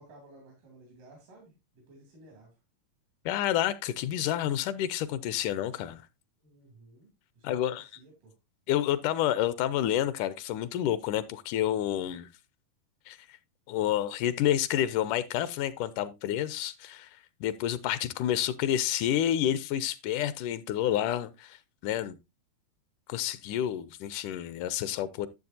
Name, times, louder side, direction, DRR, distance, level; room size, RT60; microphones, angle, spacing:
voice 1, 0.0-2.6 6.4-8.4, right 2 dB, 85° right, 4.4 m, -55 dB
voice 2, 3.3-6.0 7.4-7.9 8.7-12.3 13.1-13.2 13.7-21.6 21.8-22.2 23.1-25.3, left 11 dB, 80° left, 2.1 m, -29 dB
12.0 x 7.2 x 2.7 m
omnidirectional pair, 3.7 m